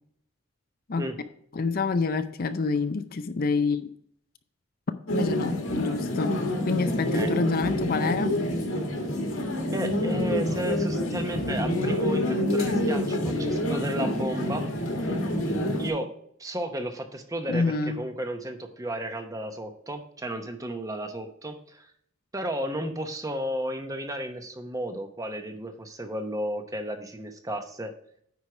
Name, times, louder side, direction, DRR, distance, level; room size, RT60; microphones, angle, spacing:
voice 1, 1.5-3.9 5.1-6.4 6.7-8.4 17.5-18.0, left 4 dB, 45° left, 10 dB, 0.5 m, -27 dB
sound 1, 5.1-15.9, left 1 dB, 75° left, 1.9 m, -27 dB
voice 2, 6.8-7.4 9.7-14.7 15.8-16.1 16.4-21.9 22.3-27.9, right 1 dB, 15° right, 6 dB, 0.9 m, -33 dB
9.5 x 4.7 x 4.7 m, 0.68 s
head